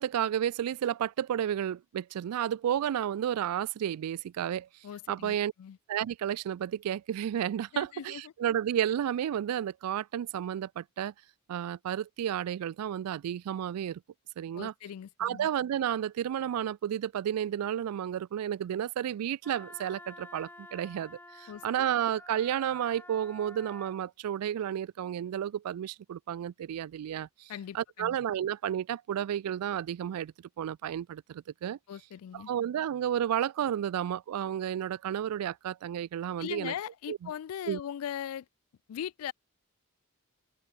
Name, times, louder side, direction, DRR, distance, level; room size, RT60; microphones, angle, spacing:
voice 1, 0.0-4.7 5.1-5.5 5.9-11.1 11.5-14.0 14.4-14.7 15.2-31.8 32.3-36.7 37.1-37.2 37.7-37.8, right 10 dB, 85° right, 0.3 m, -32 dB
voice 2, 4.8-5.8 7.7-8.3 14.5-15.5 21.5-21.9 27.5-28.2 31.9-32.5 36.4-38.5 38.9-39.3, left 9 dB, 75° left, 0.3 m, -40 dB
Wind instrument woodwind instrument, 19.4-24.0, left 2 dB, 10° left, 1.8 m, -50 dB
head